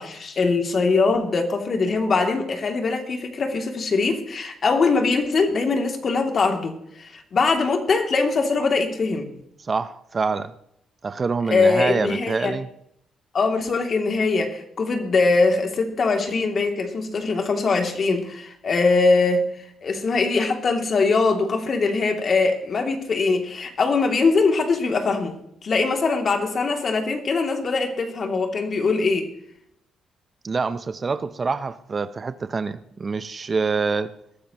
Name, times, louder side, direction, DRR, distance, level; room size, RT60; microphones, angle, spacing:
voice 1, 0.0-9.2 11.5-12.5 13.3-19.5 19.8-29.3, left 4 dB, 45° left, 3 dB, 2.7 m, -22 dB
voice 2, 9.6-10.5 11.0-12.7 30.4-34.1, right 4 dB, 35° right, 13 dB, 0.7 m, -26 dB
21.0 x 13.0 x 3.0 m, 0.73 s
cardioid pair, 90°, 0 cm